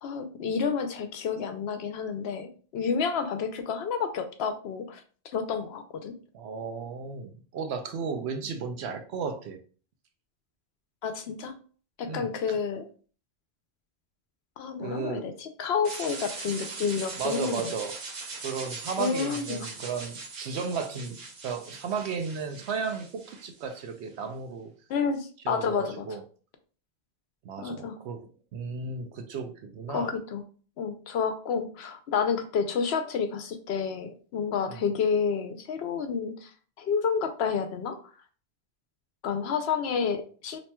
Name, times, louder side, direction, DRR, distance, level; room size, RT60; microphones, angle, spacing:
voice 1, 0.0-6.2 11.0-11.6 12.0-12.9 14.6-17.7 19.0-19.7 24.9-26.1 27.6-28.0 29.9-30.4 30.8-38.1 39.2-40.6, left 6 dB, 75° left, 7 dB, 0.8 m, -30 dB
voice 2, 6.3-9.6 12.0-12.6 14.8-15.3 17.2-17.9 18.4-21.2 21.4-24.7 25.4-26.2 27.4-30.2 34.7-34.9, right 5 dB, 85° right, 6 dB, 0.9 m, -34 dB
sound 1, 15.8-23.9, right 3 dB, 45° right, 0.8 m, -41 dB
4.2 x 3.0 x 2.2 m, 0.40 s
omnidirectional pair, 1.1 m